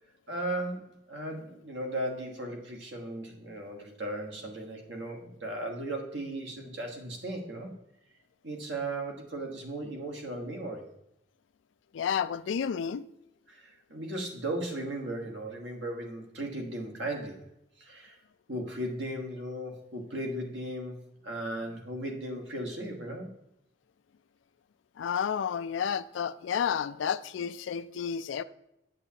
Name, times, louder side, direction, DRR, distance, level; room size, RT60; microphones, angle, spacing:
voice 1, 0.3-7.7 8.4-10.9 13.5-17.5 17.8-18.2 18.5-23.3, right 1 dB, 75° right, 1.4 m, -36 dB
voice 2, 11.9-13.1 25.0-28.4, left 7 dB, 80° left, 0.3 m, -31 dB
8.2 x 7.2 x 2.8 m
head